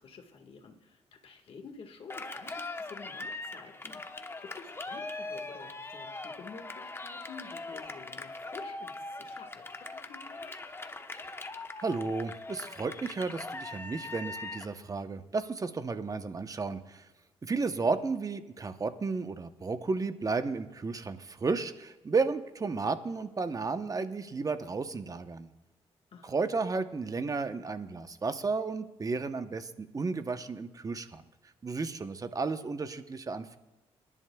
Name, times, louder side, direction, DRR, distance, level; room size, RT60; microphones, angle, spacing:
voice 1, 0.0-10.5 26.1-26.5, left 5 dB, 60° left, 4 dB, 1.7 m, -50 dB
Cheering, 2.1-14.7, left 2 dB, 20° left, 0.9 m, -41 dB
voice 2, 11.8-17.0 17.4-25.5 26.2-31.2 31.6-33.6, right 4 dB, 30° right, 10 dB, 0.9 m, -33 dB
27.0 x 11.0 x 2.3 m, 1.1 s
cardioid pair, 80°, 11 cm